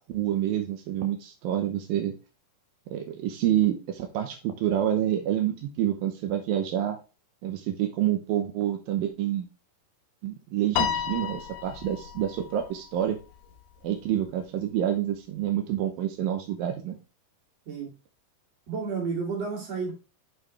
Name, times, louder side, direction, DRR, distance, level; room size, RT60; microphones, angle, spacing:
voice 1, 0.0-2.1 2.9-7.0 7.4-9.5 10.2-13.2 13.8-17.0, right 11 dB, 85° right, 4 dB, 2.7 m, -28 dB
Piano, 10.8-13.2, left 9 dB, 75° left, 2.6 m, -32 dB
voice 2, 18.7-19.9, right 5 dB, 50° right, -1 dB, 3.5 m, -31 dB
6.9 x 6.2 x 3.2 m, 0.31 s
omnidirectional pair, 4.0 m